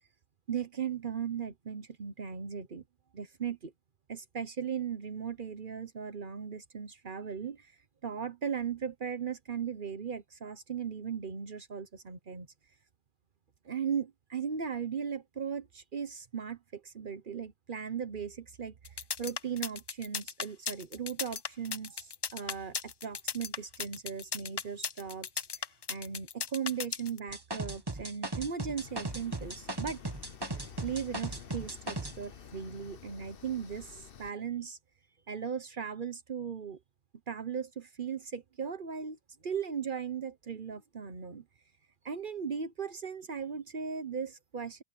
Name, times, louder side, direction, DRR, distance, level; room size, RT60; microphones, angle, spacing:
voice 1, 0.5-2.8 3.1-3.7 4.1-7.7 8.0-12.5 13.6-18.8 19.2-25.3 25.5-25.6 25.9-30.0 30.8-34.8 35.3-36.8 37.3-39.2 39.4-41.4 42.0-44.8, right 7 dB, 55° right, 1.2 m, -37 dB
sound 1, 18.8-27.2, left 6 dB, 45° left, 0.3 m, -36 dB
sound 2, 27.3-32.2, right 2 dB, 20° right, 1.5 m, -37 dB
sound 3, 28.8-34.3, left 8 dB, 60° left, 1.1 m, -50 dB
omnidirectional pair, 1.1 m